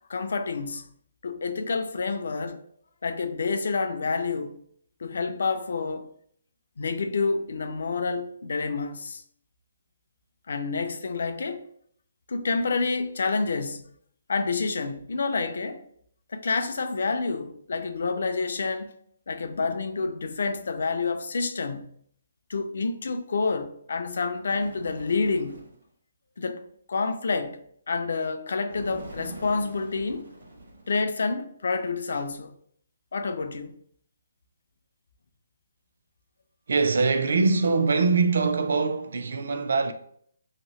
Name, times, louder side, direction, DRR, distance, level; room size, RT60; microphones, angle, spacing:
voice 1, 0.1-0.9 1.2-2.6 3.0-4.6 5.0-6.1 6.8-9.2 10.5-11.7 12.3-13.9 14.3-15.8 16.3-18.9 19.3-22.0 22.5-25.6 26.4-27.6 27.9-30.3 30.9-32.6 33.1-33.7, left 4 dB, 60° left, 0.3 m, -28 dB
Bird, 24.4-25.8 28.7-31.2, right 2 dB, 80° right, 1.1 m, -43 dB
voice 2, 36.7-39.9, right 4 dB, 55° right, 0.3 m, -23 dB
2.8 x 2.7 x 3.0 m
hypercardioid pair, 180°, 0 cm